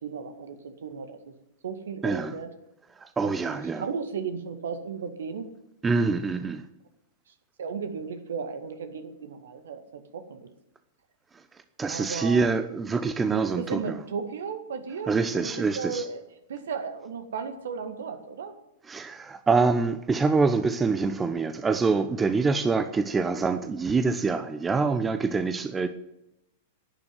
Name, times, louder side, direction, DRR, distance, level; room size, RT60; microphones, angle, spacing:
voice 1, 0.0-1.3 1.6-2.5 3.2-5.5 7.6-10.5 11.9-12.5 13.3-16.2 16.5-18.5, right 6 dB, 65° right, 2.0 m, -35 dB
voice 2, 2.0-2.3 3.0-3.8 5.8-6.6 11.8-14.0 15.1-16.0 18.9-25.9, right 4 dB, 15° right, 0.9 m, -25 dB
11.5 x 9.8 x 9.5 m
figure-of-eight pair, 100°, 0 cm